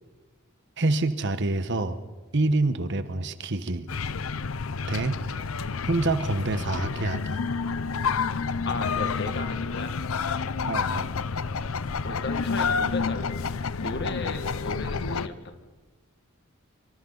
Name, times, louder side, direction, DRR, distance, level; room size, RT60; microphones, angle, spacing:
voice 1, 0.8-2.0 2.3-3.9 4.9-5.2 5.8-7.4 10.7-11.1, right 2 dB, 60° right, 11 dB, 1.1 m, -26 dB
sound 1, 3.9-15.3, left 5 dB, 75° left, 0.6 m, -29 dB
voice 2, 8.7-9.9 12.0-13.4 13.8-15.5, left 3 dB, 55° left, 7 dB, 1.9 m, -34 dB
25.5 x 25.5 x 4.0 m, 1.3 s
head